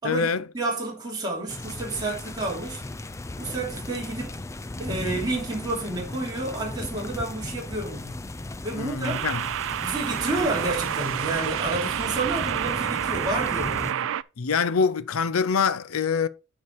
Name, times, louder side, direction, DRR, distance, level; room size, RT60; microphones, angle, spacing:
voice 1, 0.0-0.5 8.7-9.4 14.4-16.3, left 5 dB, 80° left, 0.6 m, -25 dB
voice 2, 0.5-2.8 3.4-4.4 4.8-8.2 8.6-9.3 9.8-14.1, right 2 dB, 20° right, 3.1 m, -30 dB
sound 1, 1.5-13.9, left 2 dB, 15° left, 0.4 m, -36 dB
sound 2, 5.1-5.4 9.0-14.2, right 10 dB, 65° right, 0.4 m, -29 dB
9.6 x 5.2 x 4.7 m
head